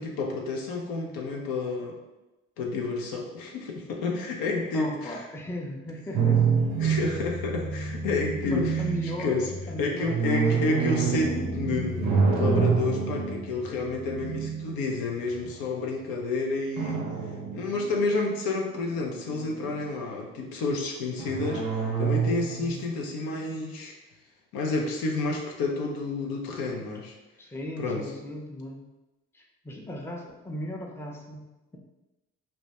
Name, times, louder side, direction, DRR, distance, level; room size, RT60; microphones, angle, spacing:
voice 1, 0.0-2.0 2.6-5.2 6.8-9.5 9.8-17.0 17.5-23.9 24.5-27.1 27.8-28.1, left 3 dB, 80° left, 1 dB, 0.5 m, -30 dB
voice 2, 4.7-6.4 8.4-10.8 27.4-28.8 29.3-31.4, left 1 dB, 5° left, 0 dB, 0.4 m, -37 dB
sound 1, 6.1-15.5 16.8-18.3 18.7-19.8 21.2-22.8, right 5 dB, 80° right, 0.5 m, -28 dB
2.2 x 2.1 x 2.8 m, 1.0 s
hypercardioid pair, 45°, 35 cm